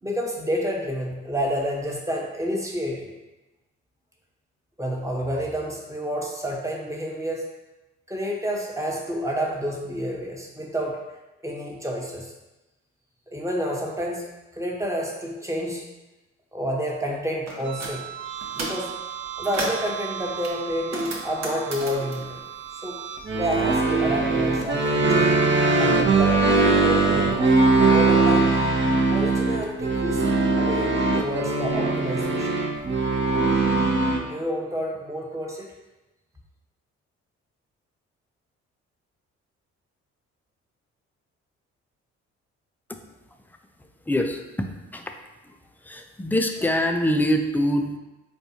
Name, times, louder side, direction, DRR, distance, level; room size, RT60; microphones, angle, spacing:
voice 1, 0.0-3.1 4.8-7.4 8.1-11.0 11.4-12.3 13.3-15.8 16.5-18.0 18.5-18.9 19.4-22.4 22.8-23.0 23.3-25.3 25.8-27.5 27.9-28.5 29.1-30.2 30.5-32.6 34.2-35.7, equal, 10° right, -1 dB, 0.9 m, -29 dB
sound 1, 17.5-18.0 18.4-18.9 19.2-19.9 20.4-23.4 23.6-24.8, right 2 dB, 55° right, 0.9 m, -35 dB
sound 2, 17.7-34.2, right 3 dB, 35° right, 0.6 m, -22 dB
voice 2, 44.1-45.1 45.4-48.0, equal, 5° left, 4 dB, 0.3 m, -25 dB
4.3 x 2.3 x 2.7 m, 1.0 s
hypercardioid pair, 45°, 33 cm